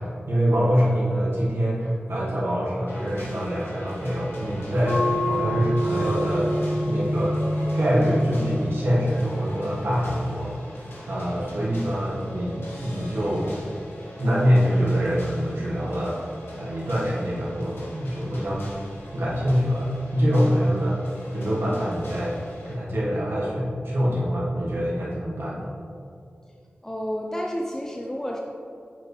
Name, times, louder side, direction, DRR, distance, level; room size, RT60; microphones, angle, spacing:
voice 1, 0.0-6.5 6.8-7.4 7.7-10.6 11.1-13.6 14.2-16.2 16.6-18.7 19.1-21.0 21.3-22.3 22.6-25.7, equal, 85° right, -7 dB, 1.4 m, -24 dB
sound 1, 2.9-22.7, equal, 90° left, 1.4 m, -41 dB
sound 2, 4.9-10.0, equal, 65° left, 1.2 m, -27 dB
voice 2, 26.8-28.4, equal, 15° left, 0 dB, 0.5 m, -30 dB
7.3 x 4.9 x 3.1 m, 2.5 s
wide cardioid pair, 65°, 4 cm